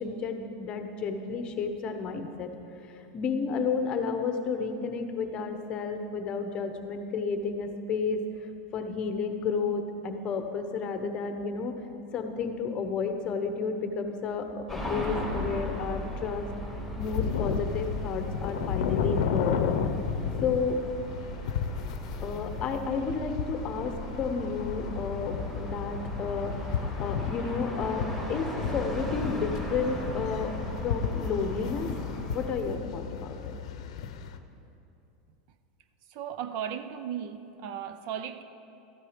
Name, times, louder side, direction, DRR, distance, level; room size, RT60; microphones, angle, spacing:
voice 1, 0.0-2.5 2.9-11.8 12.1-16.5 17.0-19.6 20.4-20.8 22.2-30.5 30.8-32.0 32.3-33.6, left 5 dB, 30° left, 0.9 m, -32 dB
sound 1, 14.7-32.5, equal, 5° right, 2.1 m, -37 dB
sound 2, 17.0-34.4, left 7 dB, 80° left, 0.7 m, -34 dB
voice 2, 36.1-38.4, right 9 dB, 45° right, 0.5 m, -36 dB
14.0 x 9.9 x 5.1 m
supercardioid pair, 160°, 3 cm